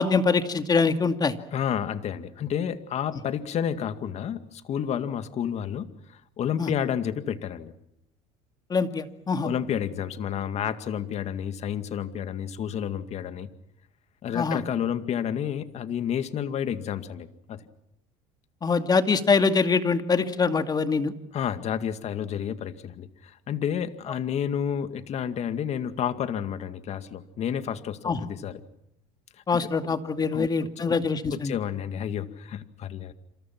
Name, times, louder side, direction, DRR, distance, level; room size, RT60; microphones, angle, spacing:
voice 1, 0.0-1.4 6.6-6.7 8.7-9.5 14.3-14.6 18.6-21.1 28.0-28.2 29.5-31.5, left 4 dB, 25° left, 8 dB, 2.3 m, -24 dB
voice 2, 1.5-7.7 9.4-13.5 14.2-17.6 21.3-28.6 29.6-29.7 30.3-30.7 31.3-33.1, left 9 dB, 45° left, 10 dB, 2.2 m, -30 dB
28.5 x 27.0 x 6.0 m, 0.78 s
supercardioid pair, 100°, 15 cm